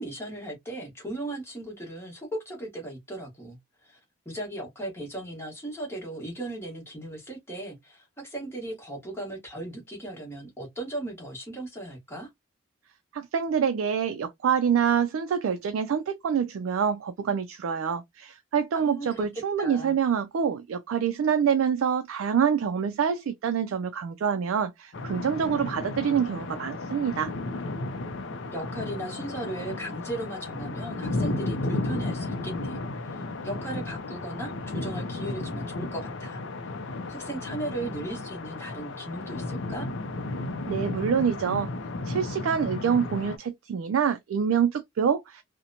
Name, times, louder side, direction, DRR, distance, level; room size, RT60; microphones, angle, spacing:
voice 1, 0.0-4.0 4.2-12.3 18.7-20.0 28.5-32.8 33.0-36.7 37.1-39.9, right 1 dB, 10° left, 1.1 m, -37 dB
voice 2, 13.1-27.3 40.7-41.7 42.1-45.4, right 7 dB, 75° right, 0.3 m, -26 dB
sound 1, 24.9-43.4, left 2 dB, 60° left, 0.4 m, -34 dB
2.8 x 2.1 x 2.5 m
head